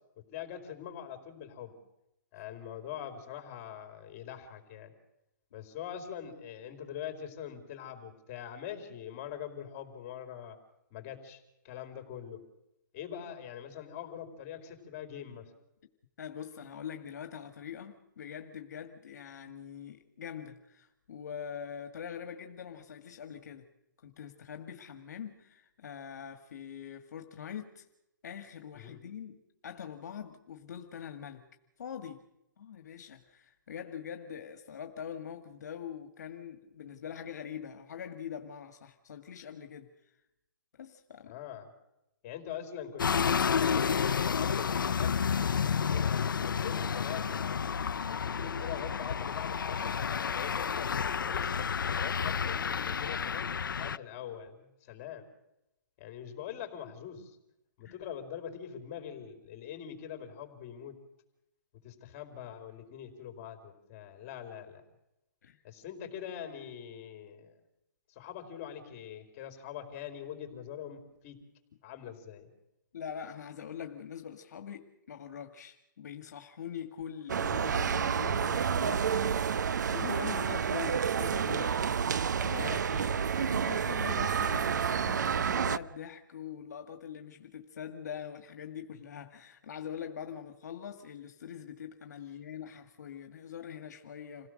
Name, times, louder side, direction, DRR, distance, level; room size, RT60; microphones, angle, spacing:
voice 1, 0.2-1.7 2.3-4.9 5.5-10.6 10.9-12.4 12.9-15.5 28.7-29.0 41.3-41.7 42.2-45.4 45.8-55.2 56.0-57.4 57.8-61.0 61.8-64.8 65.6-67.5 68.1-71.4 71.8-72.5 82.5-83.1, left 9 dB, 25° left, 5 dB, 4.3 m, -43 dB
voice 2, 16.2-23.7 24.0-27.8 28.2-31.5 31.8-32.2 32.6-40.1 40.8-41.3 57.8-58.0 65.4-65.6 72.9-79.4 79.6-82.7 83.4-94.5, left 8 dB, 55° left, 7 dB, 1.9 m, -43 dB
sound 1, 43.0-54.0, left 6 dB, 85° left, 0.7 m, -30 dB
sound 2, 77.3-85.8, right 7 dB, 65° right, 0.8 m, -29 dB
27.5 x 17.0 x 6.5 m, 0.88 s
hypercardioid pair, 165°, 11 cm